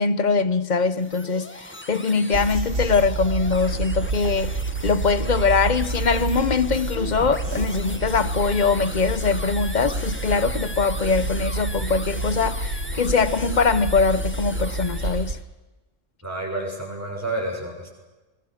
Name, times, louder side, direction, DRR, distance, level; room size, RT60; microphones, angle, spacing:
voice 1, 0.0-4.5 4.8-15.4, left 4 dB, 40° left, 1.0 m, -22 dB
sound 1, 0.8-15.4, left 1 dB, 10° left, 1.5 m, -38 dB
sound 2, 2.3-15.3, right 2 dB, 80° right, 4.0 m, -28 dB
voice 2, 16.2-17.9, right 2 dB, 10° right, 7.0 m, -29 dB
28.0 x 20.5 x 6.6 m
omnidirectional pair, 1.3 m